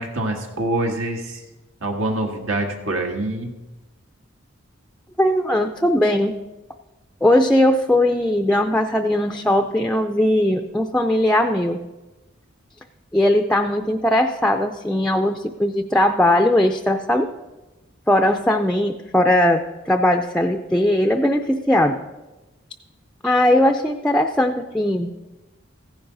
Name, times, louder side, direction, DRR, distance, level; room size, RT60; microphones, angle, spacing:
voice 1, 0.0-1.4 1.8-3.5, right 1 dB, 80° right, 2 dB, 1.8 m, -25 dB
voice 2, 5.2-6.4 7.2-11.8 13.1-17.3 18.1-22.0 23.2-25.1, left 1 dB, 5° left, 5 dB, 0.4 m, -19 dB
15.0 x 10.5 x 4.0 m, 1.1 s
head